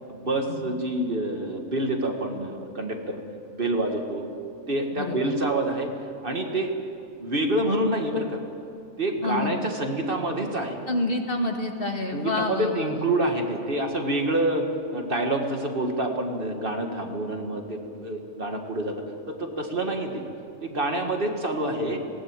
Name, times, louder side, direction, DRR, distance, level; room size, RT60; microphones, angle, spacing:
voice 1, 0.1-3.2 3.5-4.3 4.7-5.9 6.2-6.7 7.2-8.4 9.0-10.8 12.1-20.3 20.6-22.0, right 1 dB, 45° right, 4 dB, 1.9 m, -27 dB
voice 2, 5.0-5.3 9.2-9.6 10.9-13.1, left 2 dB, 45° left, 3 dB, 2.0 m, -28 dB
19.5 x 18.0 x 8.9 m, 2.6 s
omnidirectional pair, 1.4 m